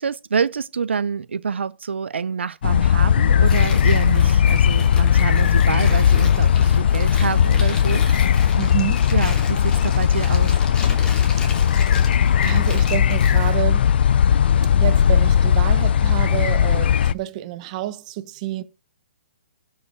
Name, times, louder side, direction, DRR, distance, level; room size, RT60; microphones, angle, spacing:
voice 1, 0.0-8.7 9.1-10.5, right 6 dB, 85° right, 0.4 m, -27 dB
sound 1, 2.6-17.1, left 8 dB, 60° left, 0.5 m, -17 dB
Tearing, 3.4-13.6, left 3 dB, 15° left, 2.6 m, -36 dB
voice 2, 8.6-9.0 11.6-11.9 12.4-13.9 14.7-18.6, right 14 dB, 40° right, 1.0 m, -28 dB
13.0 x 5.5 x 4.5 m
hypercardioid pair, 140°, 6 cm